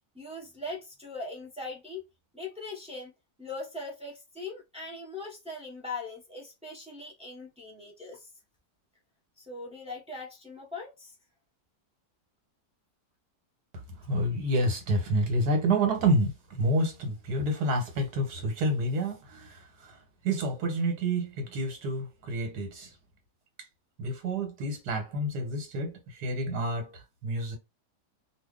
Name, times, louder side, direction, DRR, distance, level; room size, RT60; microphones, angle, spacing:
voice 1, 0.1-2.0 2.3-3.1 3.4-8.3 9.4-11.1, left 2 dB, 10° right, 0.3 m, -40 dB
voice 2, 14.0-20.0 20.2-22.9 24.0-27.6, right 1 dB, 70° right, 1.5 m, -29 dB
2.7 x 2.5 x 3.5 m
omnidirectional pair, 1.8 m